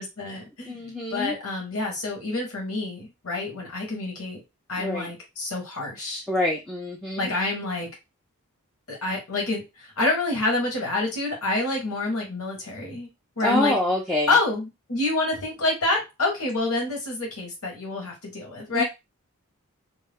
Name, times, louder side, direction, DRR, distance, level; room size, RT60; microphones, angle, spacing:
voice 1, 0.0-0.8 1.1-4.4 4.7-6.2 7.2-7.9 8.9-13.1 13.4-13.7 14.3-18.8, left 2 dB, 85° left, -1 dB, 1.2 m, -27 dB
voice 2, 0.7-1.3 4.8-5.1 6.3-7.3 13.4-14.3 18.7-18.8, left 1 dB, ahead, -3 dB, 0.4 m, -26 dB
2.6 x 2.3 x 3.4 m, 0.23 s
head